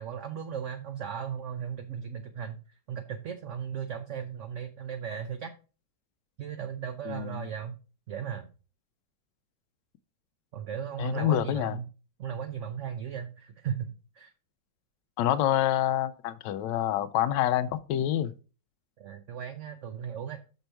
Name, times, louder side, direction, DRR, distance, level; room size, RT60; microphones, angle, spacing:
voice 1, 0.0-2.6 2.9-5.5 6.4-7.7 8.1-8.5 10.5-11.9 12.2-14.3 19.0-20.4, right 8 dB, 65° right, 0.8 m, -36 dB
voice 2, 7.1-7.4 11.0-11.8 15.2-18.3, left 12 dB, 80° left, 1.2 m, -27 dB
6.4 x 5.3 x 4.4 m
omnidirectional pair, 1.9 m